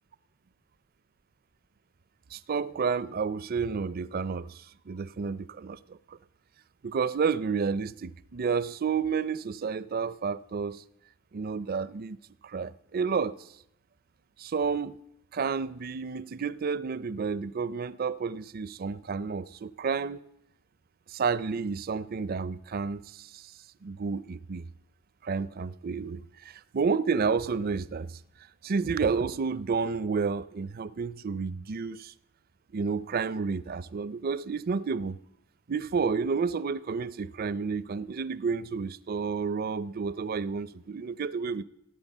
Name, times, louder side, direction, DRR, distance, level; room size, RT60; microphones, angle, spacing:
voice 1, 2.3-4.6 4.9-6.0 6.8-10.8 11.3-12.2 12.4-13.4 14.4-15.0 15.3-20.2 21.1-23.4 23.8-24.6 25.2-28.2 28.6-32.1 32.7-35.2 35.7-41.6, right 5 dB, 45° right, 0.4 m, -30 dB
16.5 x 9.4 x 7.2 m
head